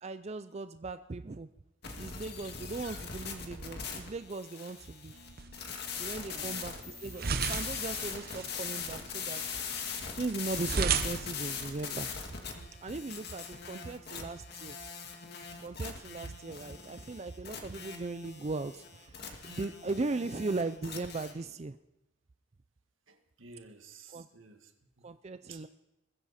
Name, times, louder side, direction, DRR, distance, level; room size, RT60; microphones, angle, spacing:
voice 1, 0.0-1.5 2.0-5.2 5.9-9.6 10.2-12.1 12.8-14.8 15.6-21.8 24.1-24.3 25.0-25.7, right 3 dB, 35° right, 11 dB, 0.5 m, -38 dB
sound 1, 1.8-21.3, left 6 dB, 55° left, 2.2 m, -41 dB
sound 2, 5.1-12.2, right 5 dB, 50° right, 1.0 m, -36 dB
voice 2, 23.1-25.1 25.5-25.6, right 4 dB, 90° right, 6 dB, 1.8 m, -53 dB
21.5 x 15.0 x 4.3 m, 0.95 s
head